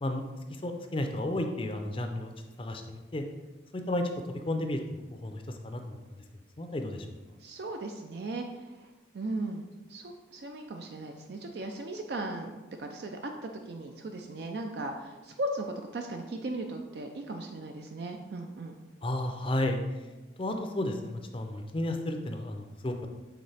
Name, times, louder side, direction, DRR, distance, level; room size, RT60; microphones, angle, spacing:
voice 1, 0.6-2.3 2.6-3.2 3.9-4.1 4.5-6.0 6.6-7.1 19.0-19.8 20.4-23.1, left 1 dB, 30° left, 5 dB, 0.5 m, -32 dB
voice 2, 7.4-8.9 9.1-18.8, right 2 dB, 60° right, 4 dB, 0.4 m, -37 dB
7.9 x 3.8 x 3.4 m, 1.2 s
head